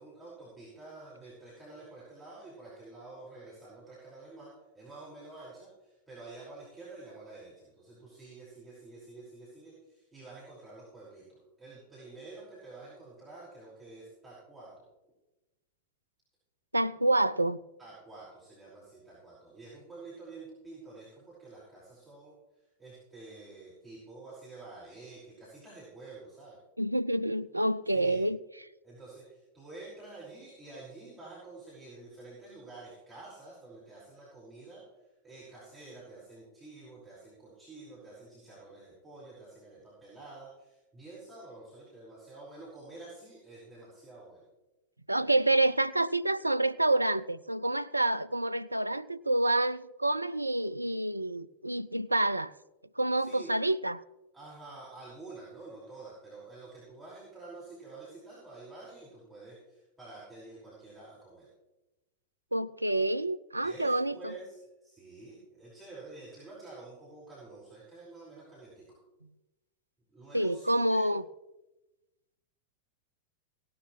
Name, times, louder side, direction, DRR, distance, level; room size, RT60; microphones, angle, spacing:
voice 1, 0.0-4.5 4.7-14.9 17.8-22.3 22.8-26.6 27.9-28.3 28.8-34.8 35.2-44.5 53.2-53.5 54.3-61.5 63.6-69.0 70.1-71.0, right 3 dB, 5° right, -9 dB, 5.5 m, -49 dB
voice 2, 16.7-17.6 26.8-28.4 45.1-52.5 53.0-54.0 62.5-64.3 70.3-71.2, right 1 dB, 85° right, 14 dB, 0.3 m, -28 dB
17.5 x 12.0 x 3.2 m, 1.0 s
figure-of-eight pair, 90°, 0 cm